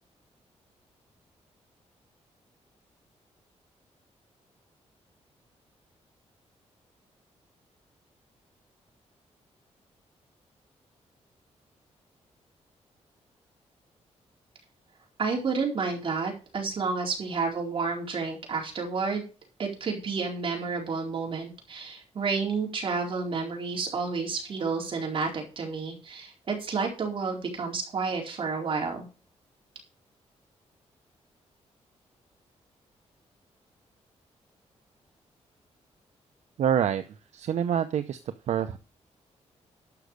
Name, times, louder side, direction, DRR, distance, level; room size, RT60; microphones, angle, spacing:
voice 1, 15.2-19.2 19.6-29.1, right 4 dB, 50° right, 0 dB, 4.3 m, -30 dB
voice 2, 36.6-37.0 37.3-38.2 38.5-38.8, right 9 dB, 75° right, 10 dB, 0.7 m, -26 dB
11.5 x 6.3 x 6.6 m, 0.35 s
wide cardioid pair, 150°, 12 cm